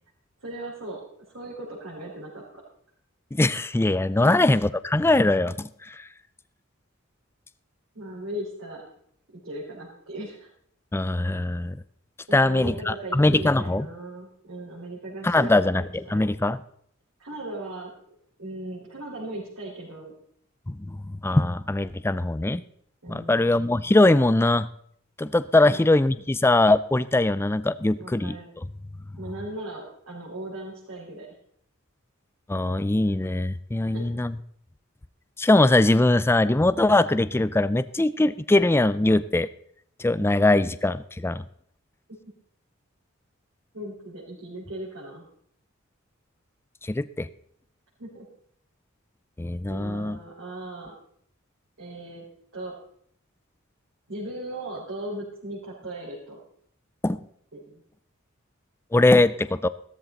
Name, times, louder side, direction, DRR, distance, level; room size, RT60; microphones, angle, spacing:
voice 1, 0.4-1.0 1.3-2.4 4.2-4.5 7.9-8.8 9.3-10.5 12.3-16.3 17.2-17.9 18.4-20.1 23.0-23.8 25.6-25.8 28.0-28.5 29.2-31.3 33.8-34.0 40.5-40.7 43.7-45.2 48.0-48.2 49.7-50.9 51.8-52.2 52.5-52.7 54.1-56.4 57.5-57.7, right 1 dB, 65° right, -6 dB, 4.7 m, -38 dB
voice 2, 3.3-6.0 10.9-11.8 12.3-13.9 15.2-16.6 20.7-22.6 23.1-24.7 25.2-28.4 32.5-34.3 35.4-39.5 40.0-41.4 46.8-47.3 49.4-50.2 57.0-57.2 58.9-59.7, left 2 dB, 10° left, 15 dB, 0.4 m, -21 dB
15.5 x 13.5 x 4.1 m, 0.65 s
head